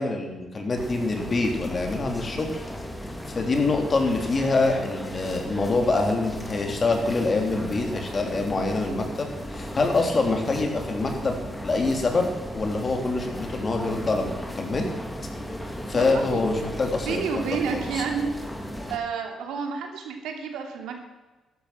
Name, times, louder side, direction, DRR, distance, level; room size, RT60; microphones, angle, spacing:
voice 1, 0.0-2.6 3.3-11.4 11.6-12.3 12.5-14.9 15.9-17.2 17.9-18.0, left 3 dB, 35° left, 3 dB, 3.3 m, -25 dB
sound 1, 0.7-19.0, equal, 10° left, 2.2 m, -36 dB
voice 2, 15.9-16.4 17.0-18.3 18.9-21.0, right 6 dB, 85° right, 3 dB, 2.8 m, -30 dB
14.0 x 12.5 x 6.0 m, 1.2 s
cardioid pair, 90°, 0 cm